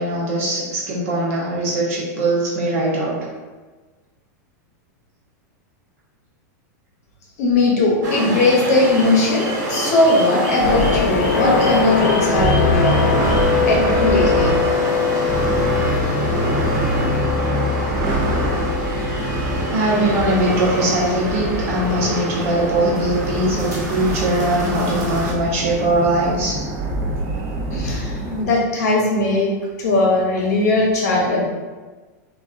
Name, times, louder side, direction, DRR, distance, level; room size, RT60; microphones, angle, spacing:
voice 1, 0.0-3.2 19.7-26.6, right 1 dB, 50° right, -5 dB, 0.9 m, -21 dB
voice 2, 7.4-14.6 27.7-31.4, left 2 dB, 65° left, -2 dB, 0.8 m, -19 dB
sound 1, 8.0-25.3, right 1 dB, 85° right, 1.0 m, -27 dB
sound 2, 10.6-22.0, left 5 dB, 80° left, 0.4 m, -23 dB
sound 3, 10.6-28.4, right 1 dB, 30° right, 0.4 m, -25 dB
3.5 x 2.3 x 2.4 m, 1.3 s
supercardioid pair, 170°, 10 cm